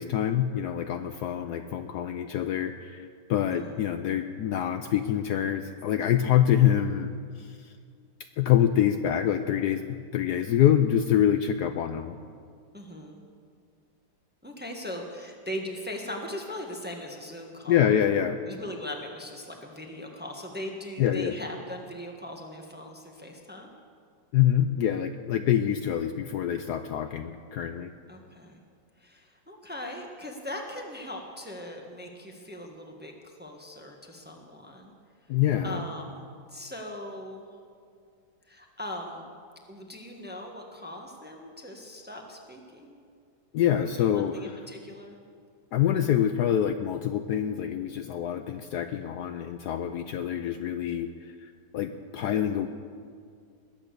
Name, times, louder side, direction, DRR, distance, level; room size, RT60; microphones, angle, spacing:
voice 1, 0.0-7.1 7.4-7.7 8.4-12.2 17.7-18.4 21.0-21.4 24.3-27.9 35.3-35.8 43.5-44.5 45.7-52.7, left 10 dB, 70° left, 8 dB, 1.0 m, -26 dB
voice 2, 3.5-3.8 12.7-13.2 14.4-17.9 18.5-23.7 28.1-28.6 29.0-34.9 35.6-37.4 38.5-39.3 39.7-43.0 44.1-45.2, left 1 dB, 5° right, 1 dB, 1.2 m, -40 dB
21.0 x 8.7 x 6.8 m, 2.2 s
omnidirectional pair, 2.0 m